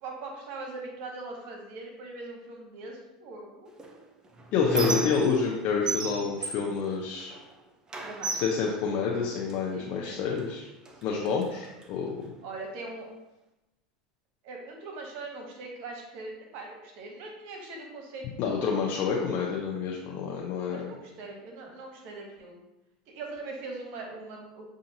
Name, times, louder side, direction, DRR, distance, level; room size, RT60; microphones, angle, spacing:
voice 1, 0.0-3.7 8.0-8.3 9.7-10.2 11.1-11.4 12.4-13.1 14.4-19.0 20.6-22.6 23.1-24.6, right 3 dB, 60° right, 1 dB, 0.9 m, -41 dB
Squeak, 3.8-5.6 5.9-7.5 7.9-9.6 10.4-10.5 10.8-11.9, right 2 dB, 20° right, 0.6 m, -34 dB
voice 2, 4.5-7.3 8.4-10.7 11.0-12.2 18.4-20.9, left 5 dB, 55° left, -2 dB, 0.6 m, -28 dB
6.9 x 2.5 x 2.7 m, 0.98 s
hypercardioid pair, 95°, 3 cm